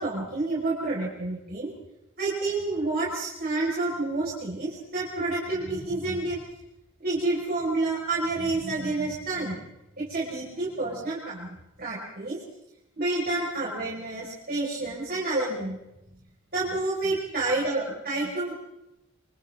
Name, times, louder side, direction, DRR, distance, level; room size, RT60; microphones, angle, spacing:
voice 1, 0.0-1.7 2.2-6.4 7.0-9.6 10.0-12.4 13.0-15.8 16.5-18.6, right 2 dB, 45° right, -5 dB, 5.7 m, -29 dB
28.0 x 27.5 x 3.9 m, 0.89 s
head